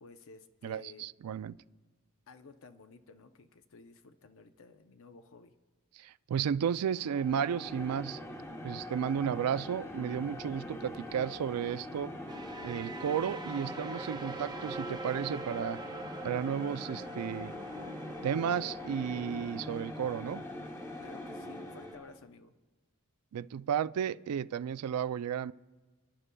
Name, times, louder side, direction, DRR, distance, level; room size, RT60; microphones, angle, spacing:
voice 1, 0.0-1.1 2.3-5.5 21.0-22.5, left 4 dB, 60° left, 0.6 m, -54 dB
voice 2, 0.6-1.6 5.9-8.2 8.6-12.1 12.6-15.8 16.2-17.5 18.2-20.4 23.3-25.5, right 8 dB, 85° right, 0.3 m, -33 dB
sound 1, 6.9-22.2, left 1 dB, 10° left, 0.8 m, -43 dB
sound 2, 12.3-22.0, right 3 dB, 20° right, 0.5 m, -45 dB
30.0 x 11.0 x 2.2 m
head